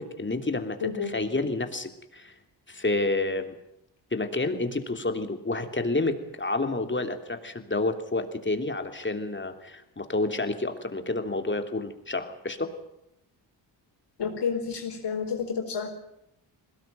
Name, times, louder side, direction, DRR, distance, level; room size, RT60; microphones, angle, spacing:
voice 1, 0.0-2.3 2.7-3.5 4.1-12.7, left 2 dB, 25° left, 7 dB, 3.1 m, -29 dB
voice 2, 0.8-1.1 14.2-15.9, left 6 dB, 65° left, 2 dB, 4.9 m, -30 dB
21.0 x 18.5 x 9.3 m, 0.82 s
cardioid pair, 60°, 45 cm